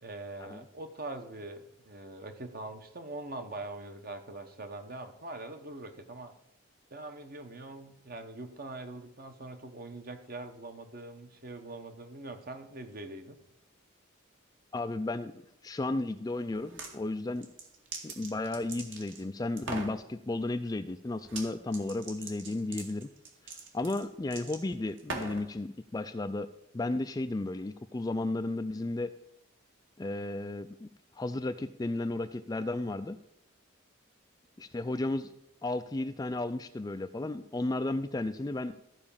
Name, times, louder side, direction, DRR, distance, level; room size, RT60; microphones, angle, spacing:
voice 1, 0.0-6.3 6.9-13.4, right 2 dB, 45° right, 7 dB, 1.1 m, -43 dB
voice 2, 14.7-15.3 15.6-17.5 18.0-23.1 23.7-26.5 26.7-29.1 30.0-30.9 31.1-33.2 34.6-35.3 35.6-38.8, left 2 dB, 20° left, 10 dB, 0.3 m, -33 dB
sound 1, 16.5-16.9 17.4-19.2 19.6-20.0 21.2-21.5 21.7-25.5, right 3 dB, 65° right, 2.1 m, -41 dB
14.0 x 5.0 x 7.1 m, 0.79 s
head